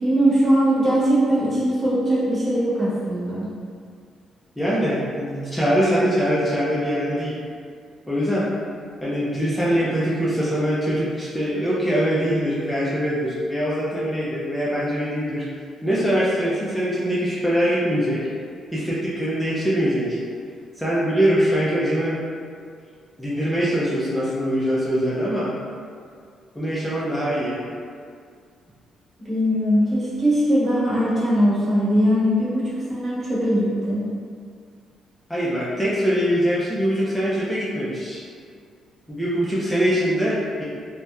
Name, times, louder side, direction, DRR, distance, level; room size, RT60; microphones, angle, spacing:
voice 1, 0.0-3.5 29.2-34.1, equal, 35° right, -9 dB, 1.1 m, -20 dB
voice 2, 4.6-7.4 8.1-8.4 9.0-15.4 15.8-18.2 18.7-20.2 20.8-22.1 23.2-25.5 26.6-27.6 35.3-38.2 39.1-40.6, equal, 5° left, -8 dB, 0.4 m, -23 dB
2.9 x 2.1 x 2.3 m, 2.2 s
cardioid pair, 90°, 0 cm